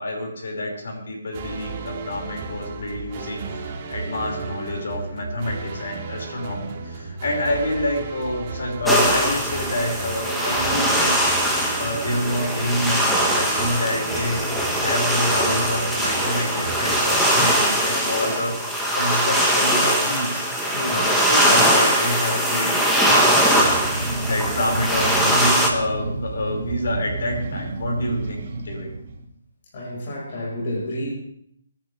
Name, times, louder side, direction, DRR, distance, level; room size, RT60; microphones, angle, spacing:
voice 1, 0.0-3.6 3.9-14.5 14.8-23.4 24.2-28.9, left 1 dB, 70° left, 0 dB, 5.6 m, -28 dB
sound 1, 1.3-18.4, right 4 dB, 35° right, 2.5 m, -34 dB
sound 2, 8.9-25.7, equal, 5° left, 1.8 m, -21 dB
voice 2, 20.7-21.1 29.7-31.1, left 1 dB, 45° left, -3 dB, 5.0 m, -30 dB
sound 3, 23.5-29.3, right 2 dB, 50° right, 2.4 m, -30 dB
24.5 x 10.5 x 3.4 m, 0.69 s
hypercardioid pair, 160°, 0 cm